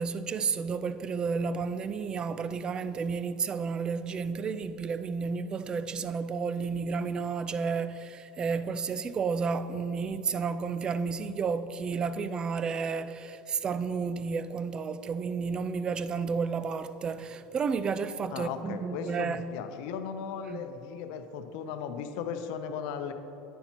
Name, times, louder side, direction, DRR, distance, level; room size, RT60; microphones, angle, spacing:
voice 1, 0.0-19.5 20.5-20.6, right 5 dB, 30° right, 0.4 m, -31 dB
voice 2, 18.3-23.1, left 7 dB, 75° left, 0.7 m, -37 dB
10.5 x 9.2 x 2.9 m
supercardioid pair, 115°, 3 cm